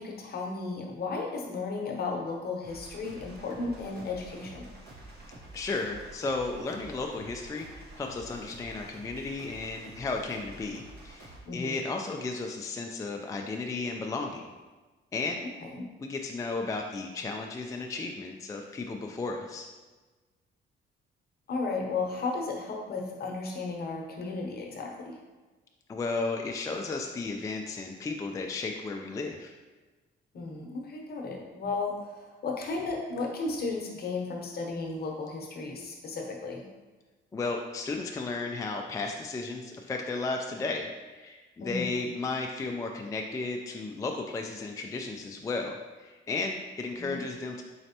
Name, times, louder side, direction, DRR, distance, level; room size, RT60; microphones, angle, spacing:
voice 1, 0.0-4.7 11.4-11.8 15.6-15.9 21.5-25.2 30.3-36.6 41.6-41.9 47.0-47.2, left 3 dB, 50° left, 0 dB, 0.8 m, -34 dB
sound 1, 2.6-11.4, right 2 dB, 55° right, 1.1 m, -48 dB
voice 2, 5.5-14.5 15.1-15.4 16.0-19.7 25.9-29.5 37.3-47.6, left 3 dB, 15° left, 2 dB, 0.3 m, -34 dB
4.2 x 3.1 x 2.8 m, 1.2 s
cardioid pair, 90°, 20 cm